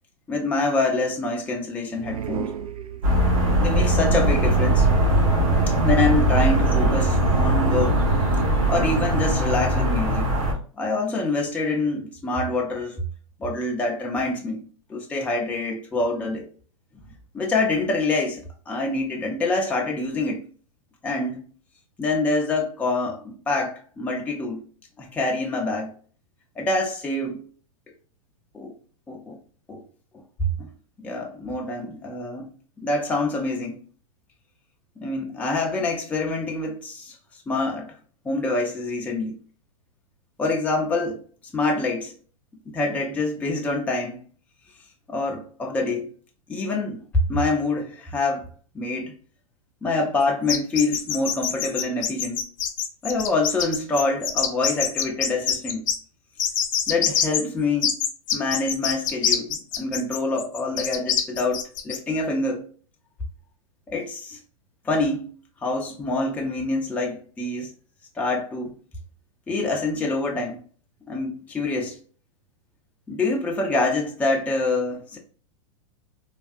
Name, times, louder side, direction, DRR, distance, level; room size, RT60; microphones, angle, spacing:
voice 1, 0.3-2.5 3.6-4.9 5.7-8.0 8.7-10.3 10.8-13.0 13.4-14.6 14.9-16.5 17.3-20.4 21.0-21.5 22.0-24.6 25.0-25.9 26.6-27.4 28.5-28.7 29.1-29.4 29.7-29.8 30.1-30.2 30.6-30.7 31.0-33.8 35.0-37.2 37.5-37.9 38.2-39.4 40.4-41.2 41.5-42.1 42.7-44.2 45.1-46.1 46.5-48.4 48.7-49.1 49.8-52.4 53.0-55.9 56.9-58.0 58.3-62.6 63.9-64.4 64.8-67.7 68.2-68.7 69.5-70.6 71.1-72.0 73.1-75.2, left 2 dB, 10° left, 0.5 m, -26 dB
sound 1, 1.9-3.5, right 8 dB, 85° right, 0.4 m, -34 dB
sound 2, 3.0-10.5, right 1 dB, 65° right, 1.2 m, -20 dB
sound 3, 50.5-56.0 56.4-57.4 57.8-62.0, left 8 dB, 60° left, 0.6 m, -24 dB
3.3 x 2.3 x 2.5 m
hypercardioid pair, 115°, 18 cm